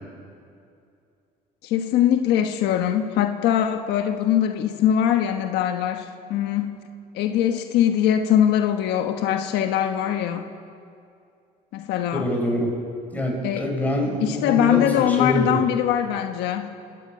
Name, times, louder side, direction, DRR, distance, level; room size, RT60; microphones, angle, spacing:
voice 1, 1.6-6.8 7.1-10.5 11.7-12.3 13.4-13.7 14.2-16.7, left 10 dB, 90° left, 6 dB, 1.3 m, -22 dB
voice 2, 12.2-12.7 13.1-15.6, left 1 dB, 10° left, 0 dB, 6.3 m, -25 dB
28.0 x 12.5 x 9.1 m, 2.4 s
cardioid pair, 110°, 17 cm